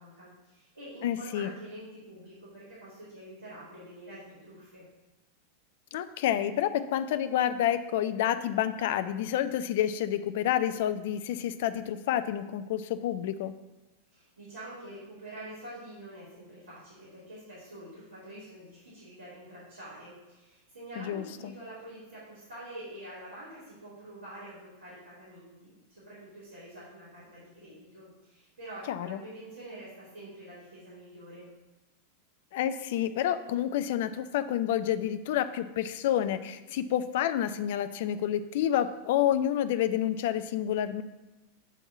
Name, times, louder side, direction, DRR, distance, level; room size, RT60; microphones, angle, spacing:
voice 1, 0.0-4.8 14.1-31.5, right 1 dB, 70° right, -12 dB, 2.8 m, -46 dB
voice 2, 1.0-1.5 5.9-13.5 21.0-21.5 28.9-29.2 32.5-41.0, left 11 dB, 55° left, 12 dB, 0.4 m, -29 dB
8.2 x 3.6 x 5.6 m, 1.1 s
figure-of-eight pair, 90°, 0 cm